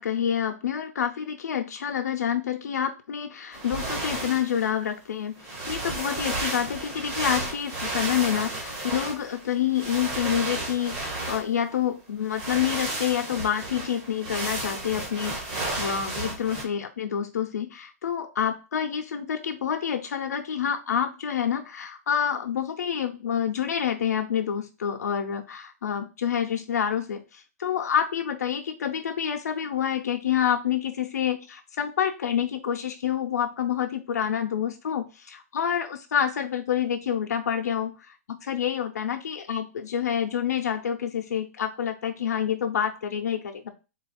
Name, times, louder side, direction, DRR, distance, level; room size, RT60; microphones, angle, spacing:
voice 1, 0.0-43.7, left 9 dB, 90° left, 4 dB, 0.6 m, -28 dB
fabric movement wool, 3.5-4.7 5.4-11.8 12.2-16.6, right 2 dB, 20° right, 0.7 m, -33 dB
3.8 x 2.4 x 4.2 m, 0.30 s
hypercardioid pair, 180°, 9 cm